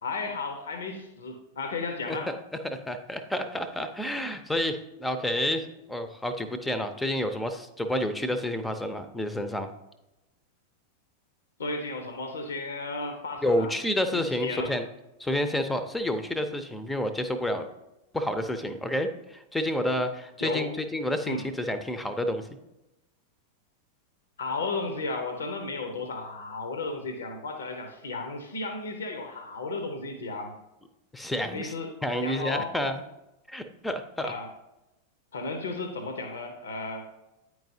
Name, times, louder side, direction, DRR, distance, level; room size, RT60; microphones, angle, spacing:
voice 1, 0.0-2.3 11.6-13.7 14.1-14.7 20.4-20.7 21.3-21.4 24.4-30.5 31.5-31.9 32.2-32.7 34.2-34.5 35.3-37.1, left 3 dB, 65° left, 5 dB, 0.8 m, -34 dB
voice 2, 2.6-9.7 13.4-14.9 15.2-17.7 18.1-22.4 31.1-31.7 32.0-33.0 33.5-34.3, left 1 dB, 5° left, 9 dB, 0.6 m, -29 dB
9.1 x 4.7 x 2.7 m, 0.94 s
figure-of-eight pair, 90°, 0 cm